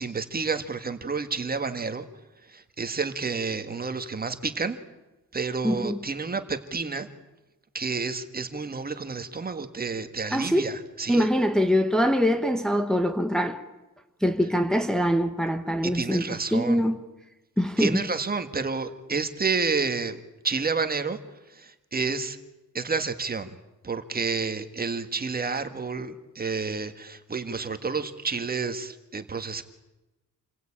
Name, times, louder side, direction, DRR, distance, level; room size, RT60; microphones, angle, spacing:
voice 1, 0.0-2.0 2.5-4.8 5.3-7.1 7.7-11.3 15.8-16.8 17.8-21.2 21.5-22.4 22.7-23.6 23.8-29.6, right 4 dB, 30° right, 1.7 m, -30 dB
voice 2, 5.6-6.0 10.3-10.6 11.1-13.6 14.2-16.2 16.5-17.0 17.6-18.0, equal, ahead, 1.2 m, -23 dB
29.0 x 22.0 x 8.8 m
wide cardioid pair, 170°, 33 cm